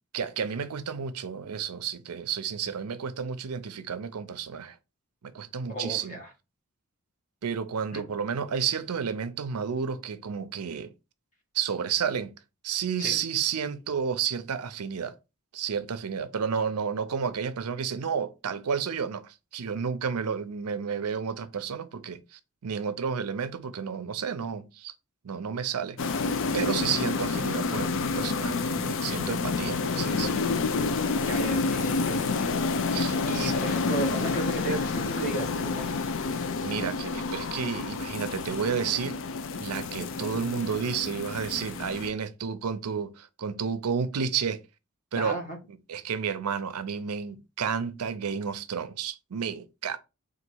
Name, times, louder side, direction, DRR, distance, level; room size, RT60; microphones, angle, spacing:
voice 1, 0.1-4.8 5.2-6.2 7.4-10.9 11.5-12.3 12.6-15.1 15.5-24.9 25.2-26.0 26.5-30.5 32.9-33.6 36.6-39.2 39.6-44.6 45.1-45.4 45.9-50.0, right 6 dB, 85° right, 0.5 m, -31 dB
voice 2, 5.7-6.3 7.9-8.0 13.0-13.2 31.2-32.5 33.3-36.0 45.1-45.6, right 1 dB, 35° left, 1.4 m, -34 dB
sound 1, 26.0-42.1, left 4 dB, 60° left, 0.5 m, -29 dB
3.9 x 2.5 x 4.5 m
head